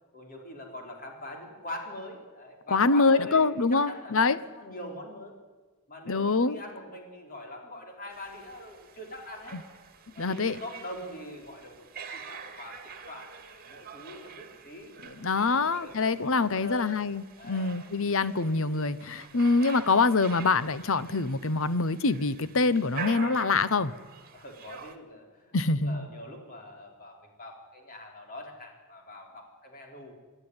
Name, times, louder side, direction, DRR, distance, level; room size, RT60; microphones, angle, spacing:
voice 1, 0.1-5.3 5.9-9.6 10.1-14.9 15.3-17.0 17.4-17.7 24.3-30.1, left 1 dB, 40° left, 1 dB, 4.2 m, -43 dB
voice 2, 2.7-4.4 6.1-6.6 10.2-10.6 15.0-23.9 25.5-26.0, left 3 dB, 65° left, 15 dB, 0.9 m, -25 dB
sound 1, 8.1-24.9, right 5 dB, 45° right, 1.9 m, -45 dB
28.0 x 11.5 x 9.7 m, 1.3 s
head